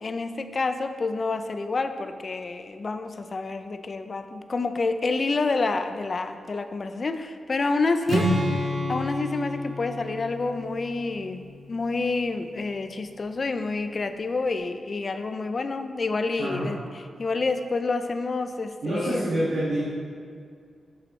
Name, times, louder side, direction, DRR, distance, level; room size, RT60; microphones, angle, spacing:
voice 1, 0.0-8.3 8.9-11.4 11.7-16.8 17.2-19.2, left 3 dB, 40° left, 9 dB, 0.4 m, -28 dB
Strum, 8.1-12.2, equal, 60° right, 1.2 m, -30 dB
voice 2, 16.4-16.7 18.8-19.8, right 1 dB, 80° right, -11 dB, 2.0 m, -27 dB
8.2 x 7.1 x 3.2 m, 2.2 s
wide cardioid pair, 130°, 0 cm